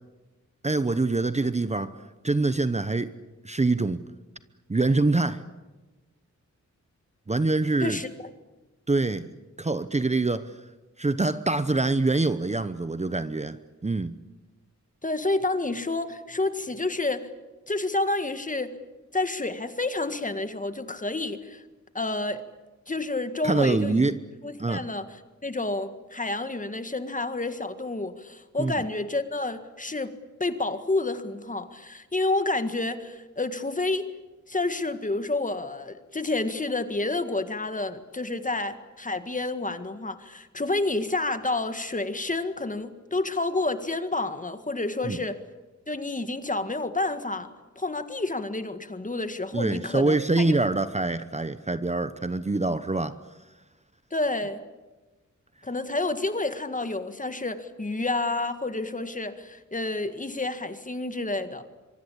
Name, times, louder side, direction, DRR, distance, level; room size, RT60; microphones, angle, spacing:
voice 1, 0.6-2.0 2.2-3.1 3.4-4.0 4.7-5.4 7.3-8.0 8.9-9.3 9.6-10.5 11.0-14.2 23.4-24.2 24.6-24.8 28.6-28.7 45.0-45.2 49.5-53.2, right 3 dB, 25° right, 12 dB, 0.9 m, -25 dB
voice 2, 7.8-8.3 15.0-17.3 17.7-18.7 19.1-21.6 21.9-22.4 22.9-24.0 24.4-30.1 30.4-34.1 34.5-45.4 45.9-47.5 47.8-50.6 54.1-54.6 55.6-61.7, left 2 dB, 25° left, 10 dB, 1.8 m, -29 dB
25.5 x 24.0 x 8.6 m, 1.2 s
wide cardioid pair, 125°, 30 cm